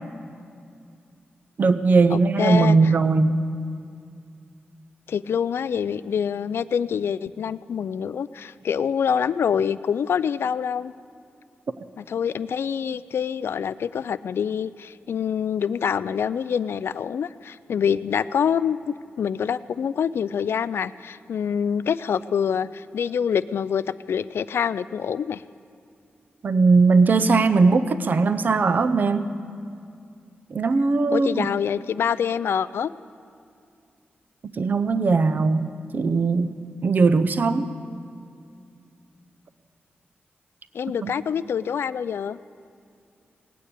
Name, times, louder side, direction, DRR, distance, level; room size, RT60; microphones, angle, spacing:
voice 1, 1.6-3.4 26.4-29.3 30.5-31.5 34.6-37.8 41.0-41.1, right 4 dB, 50° right, 11 dB, 0.6 m, -19 dB
voice 2, 2.1-2.9 5.1-10.9 12.0-25.4 31.1-32.9 40.7-42.4, left 7 dB, 80° left, 16 dB, 0.3 m, -26 dB
19.0 x 9.2 x 8.3 m, 2.4 s
wide cardioid pair, 155°, 4 cm